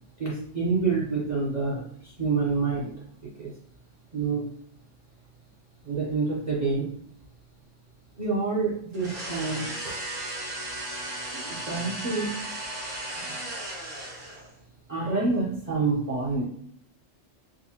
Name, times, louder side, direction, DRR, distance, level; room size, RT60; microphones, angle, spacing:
voice 1, 0.2-2.9 3.4-3.5 4.1-4.5 5.8-6.9 8.2-9.9 11.0-12.4 14.9-16.4, right 4 dB, 40° right, -5 dB, 0.7 m, -28 dB
sound 1, 8.9-14.6, right 1 dB, 80° right, 1.4 m, -35 dB
4.8 x 2.1 x 2.8 m, 0.67 s
omnidirectional pair, 1.3 m